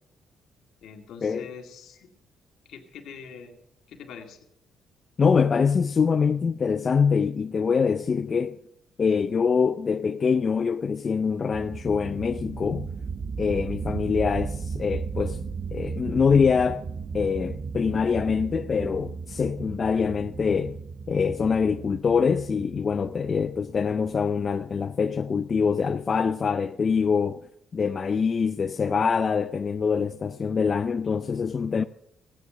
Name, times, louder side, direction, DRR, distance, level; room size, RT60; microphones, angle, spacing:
voice 1, 0.8-2.1 2.7-3.5 3.9-4.4, left 6 dB, 80° left, 2.1 m, -44 dB
voice 2, 5.2-8.6 9.0-12.9 13.4-15.4 15.7-16.9 17.1-20.8 21.1-27.4 27.7-31.8, left 6 dB, 40° left, 0.4 m, -24 dB
sound 1, 11.5-23.9, right 5 dB, 50° right, 0.6 m, -35 dB
15.5 x 9.7 x 6.6 m
cardioid pair, 90°, 0 cm